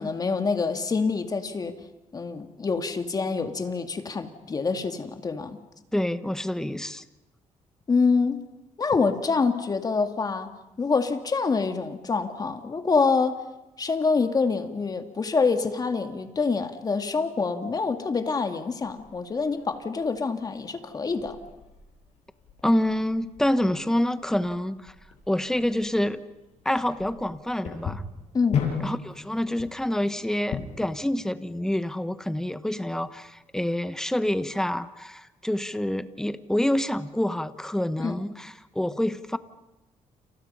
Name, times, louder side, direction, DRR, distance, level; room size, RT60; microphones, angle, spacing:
voice 1, 0.0-1.8 2.1-5.6 7.9-8.4 8.8-10.5 10.8-13.4 13.8-21.4 28.3-28.6 38.0-38.2, left 4 dB, 30° left, 7 dB, 2.2 m, -26 dB
voice 2, 5.9-7.1 22.6-24.9 25.3-26.2 26.6-28.0 28.8-39.4, left 1 dB, 5° left, 12 dB, 1.1 m, -27 dB
sound 1, 18.8-31.0, left 6 dB, 60° left, 7.2 m, -37 dB
30.0 x 28.0 x 5.6 m, 1.0 s
cardioid pair, 120°, 13 cm